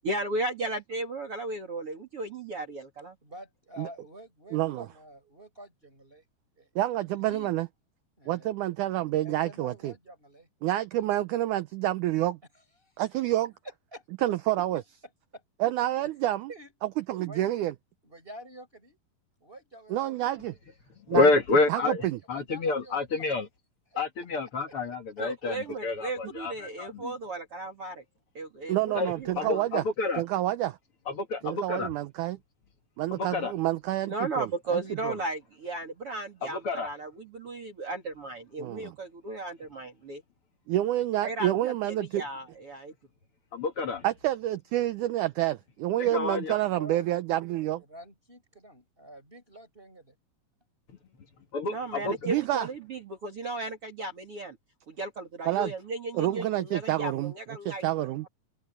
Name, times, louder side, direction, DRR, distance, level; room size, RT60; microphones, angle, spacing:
voice 1, 0.0-3.2 25.2-28.0 28.3-29.7 31.4-31.6 34.1-40.2 41.2-42.9 51.7-54.6 54.9-58.3, right 2 dB, 40° right, 3.2 m, -35 dB
voice 2, 3.2-6.2 6.6-7.5 8.2-8.5 9.2-10.5 12.8-13.0 13.9-14.3 14.7-14.8 15.3-15.4 16.5-16.9 17.2-17.5 18.0-19.0 19.4-20.2 21.9-23.0 23.9-24.3 24.7-24.8 46.7-47.1 47.8-50.2, right 1 dB, 15° right, 5.0 m, -48 dB
voice 3, 4.5-4.9 6.8-7.7 8.3-9.9 10.6-12.4 13.0-13.5 14.2-14.8 15.6-16.5 17.0-17.7 19.9-20.5 21.1-21.3 21.7-22.2 28.7-29.8 30.2-30.8 31.4-32.4 33.0-35.2 38.6-38.9 40.7-42.2 44.0-47.8 52.3-52.7 55.5-55.7 56.1-57.3 57.7-58.3, right 14 dB, 80° right, 1.8 m, -28 dB
voice 4, 21.1-23.5 24.0-26.5 26.8-27.1 28.9-30.2 31.1-31.9 33.2-33.5 36.5-36.9 43.5-44.0 46.0-46.6 51.5-52.2, left 3 dB, 45° left, 2.1 m, -28 dB
omnidirectional pair, 4.4 m